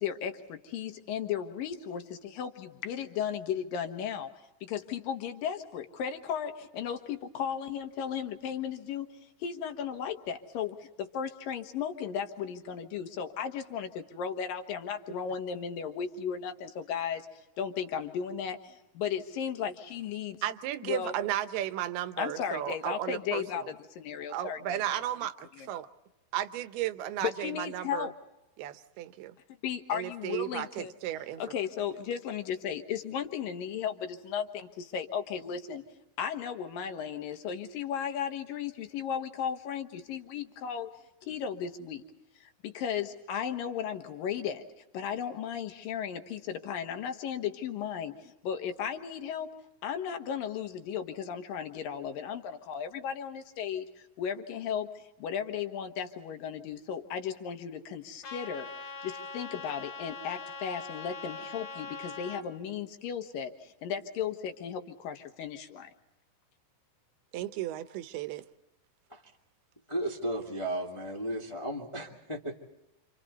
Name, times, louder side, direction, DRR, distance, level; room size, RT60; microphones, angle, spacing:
voice 1, 0.0-4.3 4.6-9.1 9.4-17.3 17.6-18.7 19.0-20.4 20.8-21.1 22.2-23.8 24.0-25.0 27.2-28.1 29.6-30.9 31.4-35.8 36.2-40.9 41.2-42.0 42.4-44.7 44.9-49.5 49.8-65.9, left 8 dB, 65° left, 6 dB, 2.7 m, -35 dB
voice 2, 20.4-23.7 24.3-25.3 25.7-25.9 26.3-28.1 28.6-29.3 29.9-31.4 67.3-68.4, right 12 dB, 75° right, 11 dB, 2.8 m, -34 dB
Trumpet, 58.2-62.4, left 3 dB, 45° left, 3.1 m, -42 dB
voice 3, 69.9-72.6, right 1 dB, 10° left, 0 dB, 1.3 m, -34 dB
28.5 x 28.0 x 4.2 m, 0.93 s
omnidirectional pair, 4.7 m